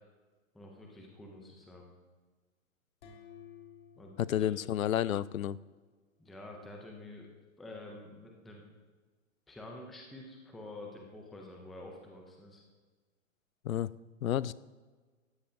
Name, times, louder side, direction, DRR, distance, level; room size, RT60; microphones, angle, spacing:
voice 1, 0.5-1.9 4.0-4.5 6.2-7.3 7.6-8.6 9.5-12.6, left 2 dB, ahead, 0 dB, 0.3 m, -48 dB
sound 1, 3.0-5.8, left 8 dB, 55° left, 2.7 m, -56 dB
voice 2, 4.2-5.6 13.6-13.9 14.2-14.5, left 11 dB, 85° left, 20 dB, 0.5 m, -30 dB
17.0 x 13.0 x 2.6 m, 1.4 s
hypercardioid pair, 125°, 40 cm